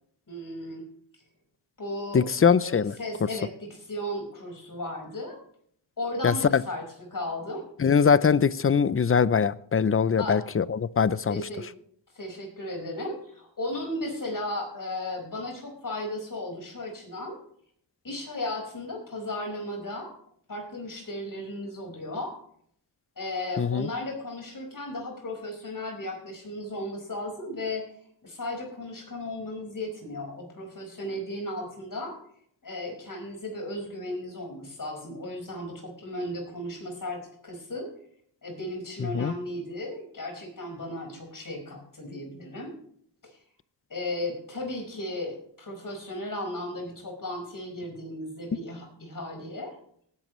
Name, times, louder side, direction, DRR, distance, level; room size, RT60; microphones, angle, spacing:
voice 1, 0.3-0.9 1.8-2.3 2.6-5.4 6.0-7.6 10.2-10.4 11.3-11.7 12.1-17.4 18.0-20.1 20.5-22.4 23.2-27.8 28.2-32.2 32.6-37.9 38.4-42.7 43.2-43.4 43.9-49.7, left 1 dB, 45° left, 2 dB, 5.2 m, -35 dB
voice 2, 2.1-3.0 6.2-6.6 7.8-11.5 23.6-23.9 39.0-39.3, left 6 dB, 30° left, 18 dB, 0.5 m, -22 dB
18.5 x 10.5 x 3.2 m, 0.62 s
cardioid pair, 80°, 44 cm